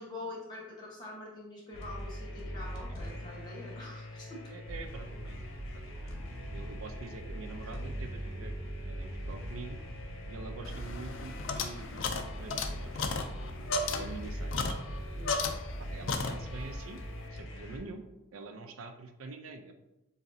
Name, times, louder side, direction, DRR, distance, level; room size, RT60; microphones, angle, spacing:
voice 1, 0.0-4.5 10.1-10.2 13.9-14.2 15.1-15.5, left 2 dB, 20° left, -4 dB, 1.1 m, -45 dB
sound 1, 1.7-17.8, equal, 80° left, 1.0 m, -43 dB
voice 2, 4.5-5.4 5.7-6.1 6.5-8.5 8.8-9.8 10.3-13.4 13.9-14.8 15.8-17.0 17.3-18.0 18.3-19.7, right 3 dB, 90° right, 6 dB, 0.5 m, -45 dB
sound 2, 4.6-16.7, right 1 dB, 65° right, 0.9 m, -43 dB
sound 3, 10.6-15.8 16.1-16.7, left 4 dB, 65° left, 0.4 m, -35 dB
7.1 x 2.6 x 2.6 m, 0.94 s
head